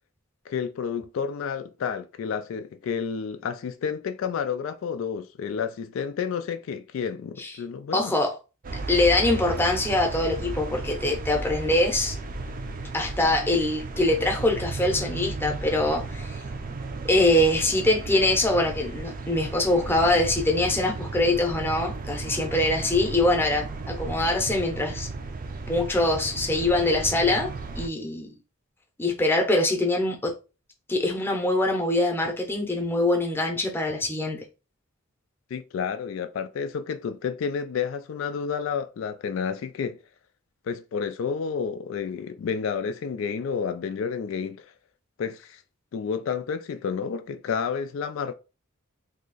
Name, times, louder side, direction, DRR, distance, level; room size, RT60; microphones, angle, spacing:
voice 1, 0.5-8.1 35.5-40.0 40.7-44.7 45.2-45.6 45.9-48.3, left 6 dB, 70° left, 0.3 m, -30 dB
voice 2, 7.9-8.3 8.9-12.1 12.9-16.4 17.1-25.1 25.7-28.4 29.0-30.4 30.9-34.4, left 2 dB, 10° left, 0.7 m, -23 dB
sound 1, 8.6-27.9, right 3 dB, 40° right, 0.4 m, -34 dB
2.8 x 2.5 x 3.8 m
head